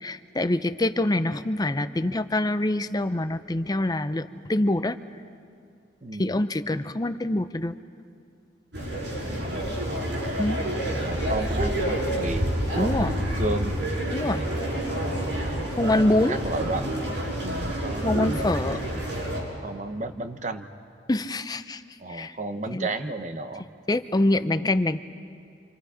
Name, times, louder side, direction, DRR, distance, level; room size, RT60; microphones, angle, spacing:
voice 1, 0.0-5.0 6.2-7.7 10.4-10.6 12.8-13.2 14.1-14.5 15.8-16.4 18.0-18.8 21.1-21.8 22.1-22.3 22.7-22.9 23.9-25.0, left 1 dB, 20° left, 11 dB, 0.6 m, -25 dB
voice 2, 6.0-6.4 9.5-10.0 11.0-13.8 14.9-15.4 16.3-17.0 17.4-18.4 19.6-20.7 22.0-23.6, right 2 dB, 40° right, 8 dB, 1.0 m, -33 dB
sound 1, 8.7-19.4, right 1 dB, 80° right, 6.7 m, -28 dB
29.5 x 26.5 x 5.0 m, 2.3 s
head